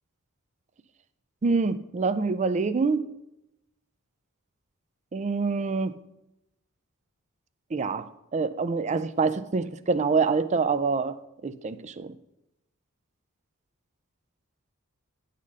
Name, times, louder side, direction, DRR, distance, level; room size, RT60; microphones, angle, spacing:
voice 1, 1.4-3.0 5.1-5.9 7.7-8.1 8.3-11.1 11.4-12.1, right 4 dB, 35° right, 13 dB, 0.4 m, -26 dB
9.7 x 4.2 x 6.2 m, 0.88 s
head